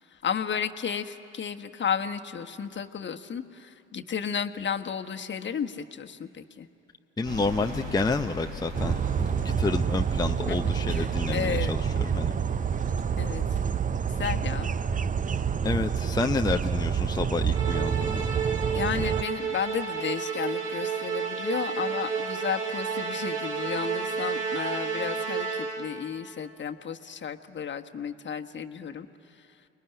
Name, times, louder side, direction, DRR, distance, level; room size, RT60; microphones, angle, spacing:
voice 1, 0.2-6.7 10.5-10.6 10.9-11.7 13.2-13.4 14.2-14.7 18.7-29.1, left 7 dB, 35° left, 6 dB, 1.3 m, -33 dB
voice 2, 7.2-12.3 15.6-18.2, left 3 dB, 15° left, 5 dB, 0.7 m, -29 dB
sound 1, 7.2-13.5, equal, 70° right, 6.8 m, -41 dB
sound 2, 8.7-19.2, right 7 dB, 25° right, 0.7 m, -28 dB
Musical instrument, 17.5-26.0, right 6 dB, 50° right, 4.7 m, -31 dB
29.0 x 20.5 x 9.9 m, 2.7 s
hypercardioid pair, 55°, 31 cm